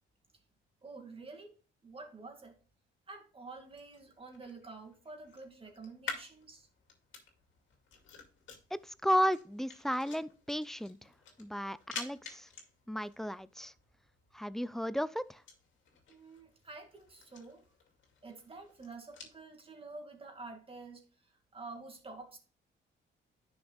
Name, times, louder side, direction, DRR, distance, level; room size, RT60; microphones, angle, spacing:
voice 1, 0.8-1.6 1.8-2.6 3.1-6.7 16.1-17.6 18.2-22.4, right 3 dB, 30° right, 2.2 m, -49 dB
sound 1, 3.6-19.4, left 5 dB, 75° left, 2.3 m, -51 dB
voice 2, 8.7-11.1 11.4-12.5 12.9-13.7 14.3-15.4, equal, ahead, 0.4 m, -34 dB
10.0 x 6.2 x 2.4 m
cardioid pair, 90°, 20 cm